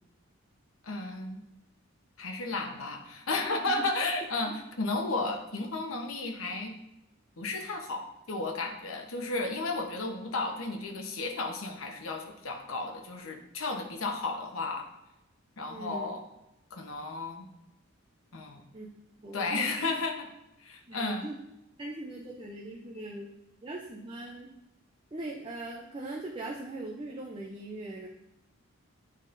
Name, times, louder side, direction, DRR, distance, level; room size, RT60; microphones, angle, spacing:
voice 1, 0.8-1.4 2.2-6.7 7.4-14.9 15.6-16.2 16.7-17.5 18.3-18.6 19.3-20.3 20.6-21.3, left 3 dB, 70° left, 3 dB, 0.9 m, -33 dB
voice 2, 15.7-16.1 18.7-18.9 19.2-19.9 20.9-21.4 21.8-23.3 23.6-24.5 25.1-28.1, right 2 dB, 25° right, -2 dB, 0.5 m, -40 dB
8.9 x 4.2 x 2.6 m, 0.89 s
head